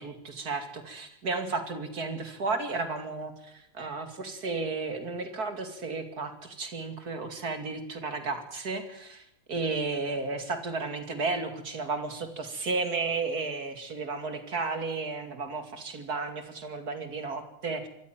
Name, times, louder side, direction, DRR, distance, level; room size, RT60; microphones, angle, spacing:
voice 1, 0.0-17.9, right 3 dB, 50° right, 8 dB, 3.0 m, -33 dB
24.5 x 14.0 x 9.2 m, 0.76 s
omnidirectional pair, 2.1 m